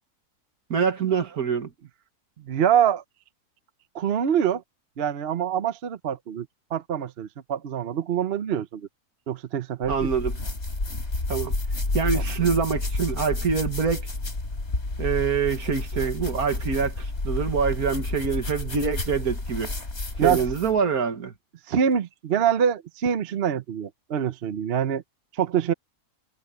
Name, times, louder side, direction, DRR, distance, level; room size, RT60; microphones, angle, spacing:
voice 1, 0.7-1.7 9.9-10.3 11.3-11.5 11.9-14.1 15.0-19.7 20.2-21.3, right 6 dB, 70° right, 2.1 m, -25 dB
voice 2, 2.5-3.0 3.9-4.6 5.0-6.5 6.7-8.9 9.3-10.1 12.1-12.2 20.2-20.4 21.7-25.0 25.3-25.7, right 8 dB, 50° right, 0.8 m, -25 dB
sound 1, 9.8-20.8, left 2 dB, 45° left, 3.9 m, -30 dB
omnidirectional pair, 1.7 m